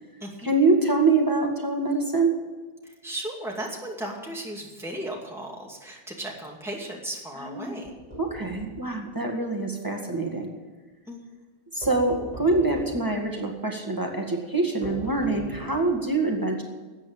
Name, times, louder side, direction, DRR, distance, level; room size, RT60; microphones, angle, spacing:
voice 1, 0.4-2.4 7.4-7.8 8.2-10.5 11.7-16.6, right 3 dB, 20° right, 1 dB, 2.0 m, -25 dB
voice 2, 2.8-7.9 11.1-11.2, right 1 dB, ahead, -2 dB, 2.4 m, -35 dB
sound 1, 7.8-8.8 11.8-13.1 14.8-16.0, equal, 35° right, 4.5 m, -40 dB
13.5 x 8.8 x 8.9 m, 1.3 s
omnidirectional pair, 1.1 m